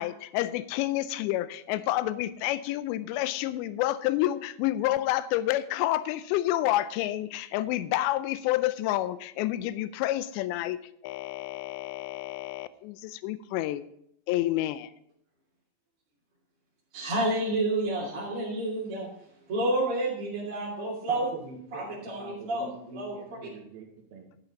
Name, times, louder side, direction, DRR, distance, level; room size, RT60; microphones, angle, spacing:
voice 1, 0.0-13.8 14.3-14.9, left 15 dB, 85° left, 14 dB, 2.7 m, -29 dB
voice 2, 16.9-19.1 19.5-21.3 21.7-22.7 22.9-23.2, right 2 dB, 35° right, -7 dB, 2.8 m, -29 dB
voice 3, 21.1-21.9 22.2-24.4, right 3 dB, 65° right, 2 dB, 3.2 m, -44 dB
12.0 x 8.9 x 4.0 m, 0.73 s
omnidirectional pair, 5.3 m